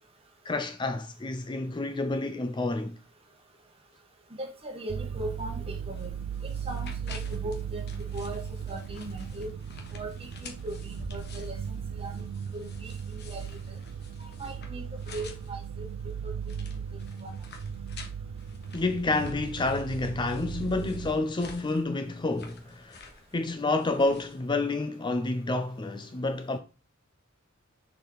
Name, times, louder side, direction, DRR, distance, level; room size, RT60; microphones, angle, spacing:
voice 1, 0.5-2.9 18.7-23.1 23.3-26.6, left 2 dB, 20° left, 0.5 m, -29 dB
voice 2, 4.4-6.1 6.4-8.4 8.7-9.5 9.9-13.5 14.2-16.3 17.2-17.3, right 1 dB, 25° right, 1.5 m, -39 dB
sound 1, 4.9-21.2, right 7 dB, 70° right, 0.4 m, -37 dB
sound 2, 5.2-24.4, left 3 dB, 50° left, 1.4 m, -50 dB
6.7 x 4.9 x 3.9 m
head